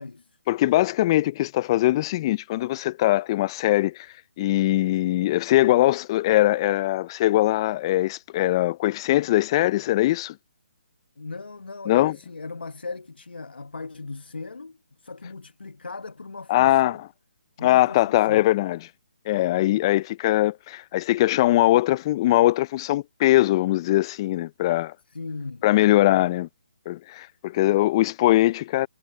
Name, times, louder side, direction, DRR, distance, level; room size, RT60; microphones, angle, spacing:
voice 1, 0.5-4.1 4.4-10.4 11.9-12.2 16.5-17.0 17.6-18.8 19.3-24.9 25.6-26.5 26.9-28.9, left 16 dB, 30° left, 0.4 m, -21 dB
voice 2, 11.2-17.0 17.6-18.4 25.1-26.3, left 3 dB, 85° left, 1.3 m, -38 dB
figure-of-eight pair, 150°, 5 cm